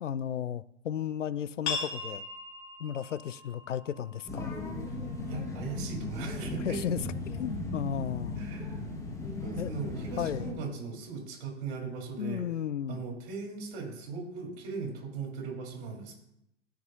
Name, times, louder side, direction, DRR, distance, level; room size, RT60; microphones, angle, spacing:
voice 1, 0.0-2.3 2.8-4.6 6.6-7.0 7.3-8.4 9.6-9.7 10.2-10.5 12.2-13.0, left 9 dB, 90° left, 17 dB, 0.5 m, -34 dB
sound 1, 1.6-7.0, left 4 dB, 65° left, 3.0 m, -41 dB
sound 2, 4.3-10.5, left 3 dB, 10° left, 1.5 m, -37 dB
voice 2, 5.3-6.8 8.4-8.8 9.4-12.4 12.9-16.1, right 4 dB, 45° right, 0 dB, 3.4 m, -38 dB
15.0 x 5.4 x 2.7 m, 0.80 s
hypercardioid pair, 105°, 36 cm